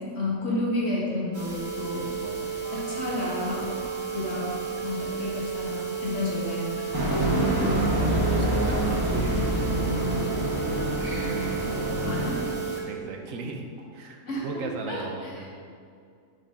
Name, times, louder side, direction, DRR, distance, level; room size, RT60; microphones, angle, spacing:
voice 1, 0.2-2.2 2.7-3.8 4.1-6.7 12.0-12.4 14.3-15.5, left 2 dB, 60° left, -5 dB, 2.0 m, -31 dB
sound 1, 1.3-12.8 13.3-13.4 13.8-13.9 14.3-14.4, right 6 dB, 40° right, 1.4 m, -33 dB
voice 2, 2.1-2.5 6.9-10.0 12.8-15.5, right 3 dB, 80° right, 3 dB, 1.2 m, -37 dB
sound 2, 6.9-12.5, right 1 dB, 20° right, 1.0 m, -26 dB
11.0 x 4.2 x 3.7 m, 2.3 s
omnidirectional pair, 1.4 m